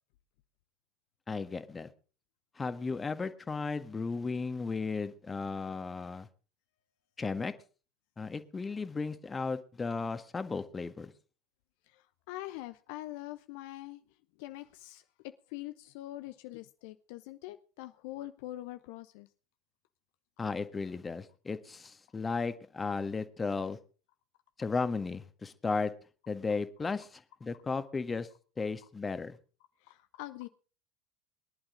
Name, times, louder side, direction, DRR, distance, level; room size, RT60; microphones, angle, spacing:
voice 1, 1.3-1.9 2.5-6.3 7.2-7.5 8.2-11.1 20.4-23.8 24.6-25.9 26.3-28.3 28.6-29.4, left 4 dB, 20° left, 10 dB, 1.6 m, -35 dB
voice 2, 11.9-14.0 14.4-19.3 29.8-30.5, left 16 dB, 55° left, 10 dB, 0.8 m, -44 dB
23.0 x 11.5 x 3.8 m, 0.38 s
figure-of-eight pair, 75°, 0 cm